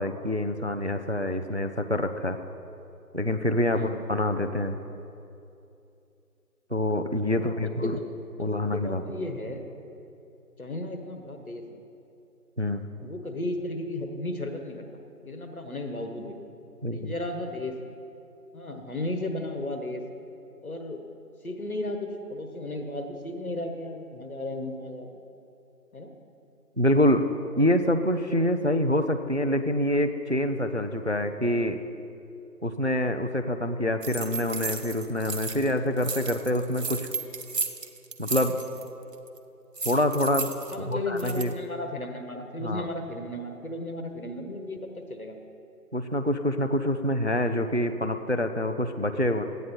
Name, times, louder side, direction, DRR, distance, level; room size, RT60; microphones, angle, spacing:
voice 1, 0.0-2.4 3.1-4.8 6.7-8.0 8.4-9.0 12.6-12.9 16.8-17.1 26.8-27.2 27.6-31.8 32.6-37.1 38.2-38.6 39.8-40.5 40.9-41.5 42.6-42.9 45.9-49.4, left 1 dB, 50° right, 8 dB, 0.4 m, -26 dB
voice 2, 7.4-8.0 8.4-9.6 10.6-11.8 13.0-14.8 15.2-16.4 16.9-17.8 18.5-20.0 20.6-21.0 21.4-25.2 25.9-26.1 40.7-45.4, left 1 dB, 60° left, 5 dB, 1.4 m, -34 dB
sound 1, 34.0-35.7 36.0-38.9 39.1-39.4 39.8-41.5, right 4 dB, 85° right, 1.1 m, -34 dB
14.0 x 9.2 x 4.3 m, 2.7 s
figure-of-eight pair, 170°, 47 cm